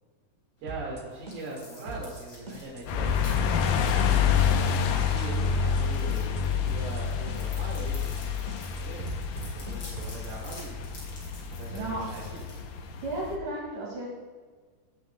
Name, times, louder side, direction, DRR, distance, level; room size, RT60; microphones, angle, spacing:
sound 1, 0.6-13.3, left 2 dB, 35° left, 4.3 m, -51 dB
voice 1, 0.6-3.9 5.0-10.8 11.5-12.4, right 2 dB, 85° right, -6 dB, 4.2 m, -41 dB
sound 2, 0.7-1.0 1.3-2.2 2.5-2.8 3.1-3.4 3.7-5.8 6.1-6.4 6.7-7.0 7.3-7.6 7.9-8.2 8.5-10.2, right 2 dB, 40° right, 0.9 m, -39 dB
sound 3, 2.9-13.4, left 7 dB, 80° left, 2.7 m, -28 dB
voice 2, 11.7-12.0 13.0-14.1, right 2 dB, 60° right, -4 dB, 3.8 m, -33 dB
18.0 x 11.5 x 2.4 m, 1.5 s
omnidirectional pair, 4.2 m